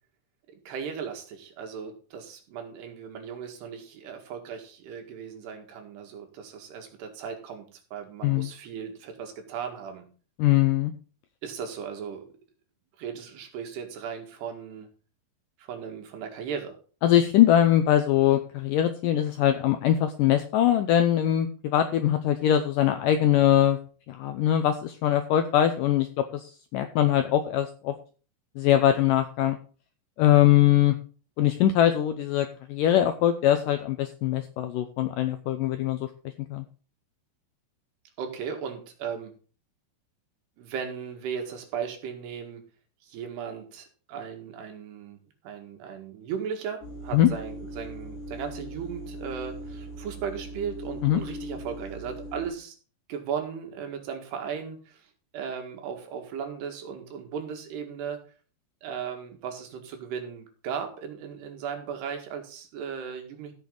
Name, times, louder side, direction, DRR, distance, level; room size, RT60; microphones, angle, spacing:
voice 1, 0.7-7.7 7.9-10.1 11.4-12.2 13.0-14.9 15.6-16.8 38.2-39.3 40.6-42.6 43.0-45.2 45.4-52.8 53.1-58.2 58.8-63.5, right 7 dB, 85° right, 4 dB, 4.0 m, -36 dB
voice 2, 10.4-10.9 17.0-23.8 24.1-27.9 28.6-29.6 30.2-31.0 31.4-36.1 36.5-36.6 47.1-47.3 51.0-51.2, left 11 dB, 90° left, 8 dB, 1.9 m, -22 dB
sound 1, 46.8-52.5, equal, 55° left, 7.5 m, -40 dB
15.5 x 6.5 x 3.9 m, 0.38 s
omnidirectional pair, 4.7 m